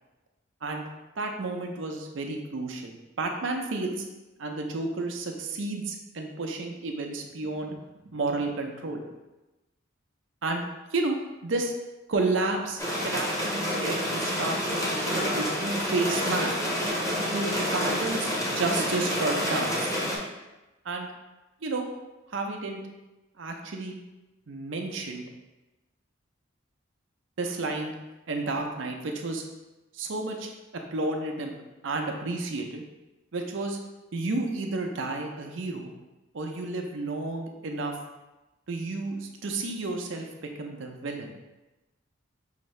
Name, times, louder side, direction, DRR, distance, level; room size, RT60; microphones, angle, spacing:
voice 1, 1.2-4.0 4.4-7.8 8.0-9.0 10.4-10.6 10.9-11.2 11.4-11.7 12.1-16.6 17.3-19.9 20.8-21.1 21.6-21.9 22.3-22.8 23.4-24.0 24.5-25.3 27.4-27.9 28.3-29.4 29.9-31.5 31.8-32.8 33.3-33.8 34.1-35.9 36.3-38.0 38.7-41.3, right 3 dB, 70° right, 3 dB, 0.6 m, -31 dB
sound 1, 12.8-20.2, equal, 15° left, 0.9 m, -28 dB
5.7 x 2.7 x 3.1 m, 1.1 s
head